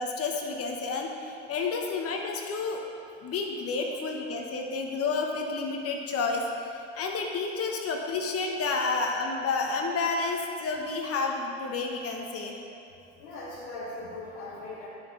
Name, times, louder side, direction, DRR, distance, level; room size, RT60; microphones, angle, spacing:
voice 1, 0.0-2.8 3.2-12.6, left 4 dB, 40° left, 2 dB, 1.0 m, -30 dB
voice 2, 13.2-14.9, left 2 dB, 75° left, -7 dB, 1.4 m, -39 dB
10.0 x 6.3 x 3.8 m, 2.6 s
hypercardioid pair, 80°, 36 cm